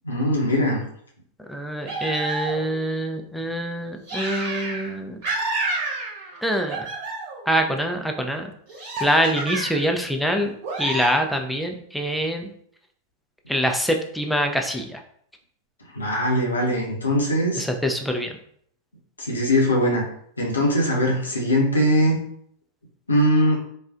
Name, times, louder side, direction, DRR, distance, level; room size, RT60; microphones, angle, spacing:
voice 1, 0.0-0.8 15.9-17.6 19.2-20.0 20.4-22.2 23.1-23.6, equal, 75° left, -2 dB, 0.8 m, -21 dB
voice 2, 1.5-5.2 6.4-6.9 7.5-8.5 9.0-12.5 13.5-15.0 17.6-18.3, equal, ahead, 3 dB, 0.4 m, -25 dB
sound 1, 1.8-2.8 4.1-4.9 5.2-6.4 6.7-7.5 8.7-10.0 10.6-11.1, right 2 dB, 45° right, 1.1 m, -29 dB
4.2 x 2.3 x 2.4 m, 0.66 s
figure-of-eight pair, 90°, 0 cm